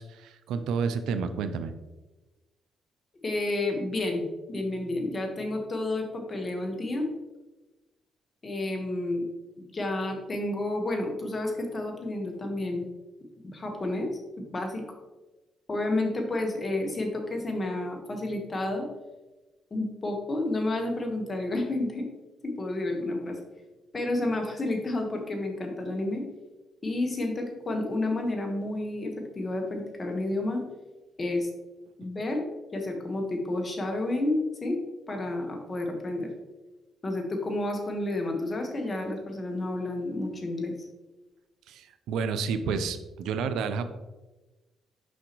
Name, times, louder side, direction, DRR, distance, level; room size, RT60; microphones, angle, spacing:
voice 1, 0.0-1.7 41.7-43.8, right 5 dB, 85° right, 10 dB, 0.5 m, -30 dB
voice 2, 3.2-7.1 8.4-9.3 9.6-12.9 13.4-14.1 14.4-14.8 15.7-18.9 19.7-22.1 22.4-23.4 23.9-26.2 26.8-30.6 31.2-31.5 32.0-32.4 32.7-34.8 35.1-36.3 37.0-40.7, left 2 dB, 30° left, 3 dB, 1.3 m, -30 dB
6.3 x 5.5 x 3.0 m, 1.1 s
cardioid pair, 90°, 0 cm